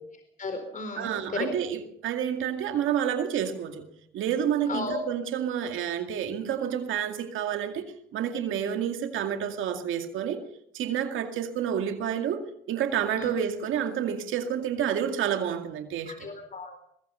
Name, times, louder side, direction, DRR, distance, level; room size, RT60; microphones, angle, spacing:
voice 1, 0.4-1.2 4.7-5.0 13.2-13.3 16.1-16.8, left 3 dB, 40° left, 6 dB, 4.4 m, -35 dB
voice 2, 1.0-3.9 4.1-7.8 8.1-10.4 10.7-12.4 12.7-16.3, right 9 dB, 85° right, 5 dB, 2.3 m, -29 dB
22.0 x 21.5 x 5.6 m, 0.71 s
cardioid pair, 90°, 20 cm